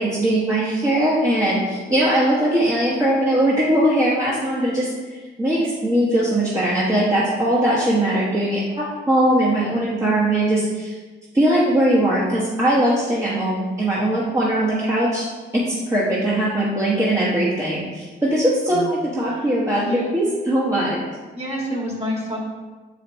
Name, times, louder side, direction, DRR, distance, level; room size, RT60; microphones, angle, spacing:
voice 1, 0.0-10.9 11.3-15.2 15.5-21.0, right 1 dB, 15° right, -6 dB, 1.2 m, -20 dB
voice 2, 19.3-20.1 21.3-22.4, equal, 30° right, -3 dB, 1.9 m, -28 dB
6.5 x 5.1 x 3.0 m, 1.3 s
cardioid pair, 90°, 20 cm